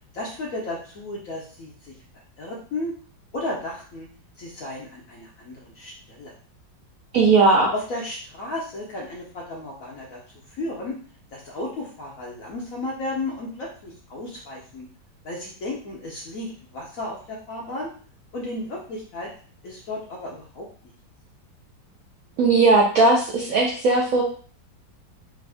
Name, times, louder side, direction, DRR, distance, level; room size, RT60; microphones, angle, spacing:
voice 1, 0.1-1.9 2.4-2.9 3.3-4.1 4.4-6.3 7.7-10.2 10.6-11.0 11.3-14.9 15.2-17.9 18.3-19.3 19.6-20.9, left 2 dB, 65° left, -2 dB, 0.9 m, -34 dB
voice 2, 7.1-7.7 22.4-24.2, right 3 dB, 70° right, -2 dB, 0.8 m, -17 dB
3.5 x 2.5 x 3.3 m, 0.44 s
omnidirectional pair, 2.1 m